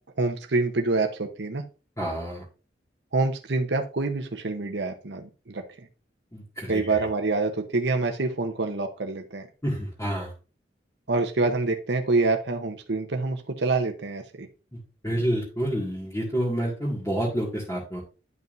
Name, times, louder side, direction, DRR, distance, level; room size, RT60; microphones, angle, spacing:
voice 1, 0.2-1.6 3.1-5.6 6.7-9.5 11.1-14.5, right 3 dB, 75° right, 5 dB, 0.9 m, -26 dB
voice 2, 2.0-2.4 6.3-7.0 9.6-10.3 14.7-18.0, right 1 dB, 15° left, -6 dB, 2.0 m, -29 dB
11.0 x 5.5 x 2.6 m, 0.33 s
head